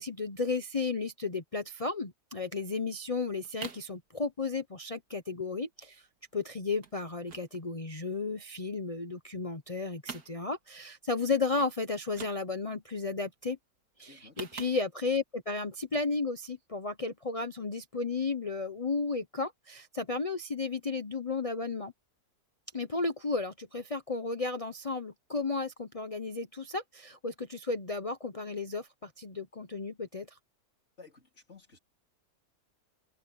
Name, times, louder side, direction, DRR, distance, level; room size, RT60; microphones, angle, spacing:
voice 1, 0.0-6.1 6.3-13.6 14.0-21.9 22.7-30.4, left 3 dB, 30° left, 0.8 m, -33 dB
sound 1, 3.3-3.9 4.3-4.7 5.0-5.1 5.3-5.5 5.8-6.3 6.8-7.0 7.3-8.5 8.9-9.7 9.9-10.8 11.2-11.3 11.6-11.8 12.0-12.8 14.1-15.2 15.8-16.1 16.5-16.6, right 5 dB, 85° right, 2.4 m, -47 dB
voice 2, 14.1-14.4 31.0-31.8, left 4 dB, 50° left, 4.1 m, -54 dB
omnidirectional pair, 1.5 m